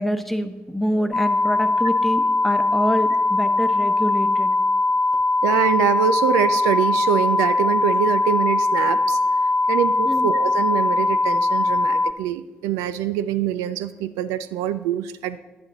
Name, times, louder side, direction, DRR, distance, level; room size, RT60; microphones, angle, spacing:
voice 1, 0.0-4.5 10.1-10.3, equal, 5° left, 8 dB, 1.0 m, -26 dB
sound 1, 1.1-12.1, left 2 dB, 30° left, 0.5 m, -20 dB
voice 2, 5.4-9.2 9.7-15.4, right 10 dB, 75° right, 13 dB, 0.4 m, -24 dB
10.5 x 10.5 x 3.9 m, 1.2 s
hypercardioid pair, 40°, 6 cm